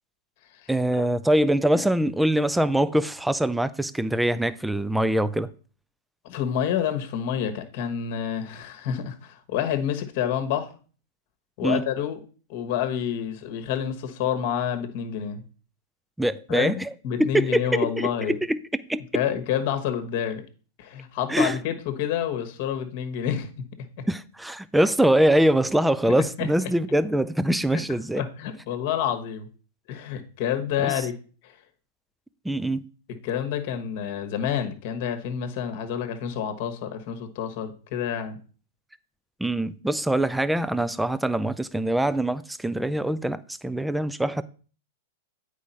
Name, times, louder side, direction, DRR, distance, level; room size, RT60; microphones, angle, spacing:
voice 1, 0.7-5.5 11.6-11.8 16.2-16.9 17.2-19.2 21.3-21.6 24.1-28.2 30.8-31.1 32.4-32.8 39.4-44.4, right 1 dB, 5° right, 0.4 m, -23 dB
voice 2, 6.2-10.7 11.6-12.2 12.5-15.4 16.5-18.4 19.1-20.4 20.8-23.5 26.4-26.5 27.7-27.8 28.2-29.5 29.9-31.2 31.4-31.6 33.2-38.4, left 9 dB, 55° left, 1.2 m, -28 dB
8.6 x 4.8 x 4.2 m
hypercardioid pair, 120°, 0 cm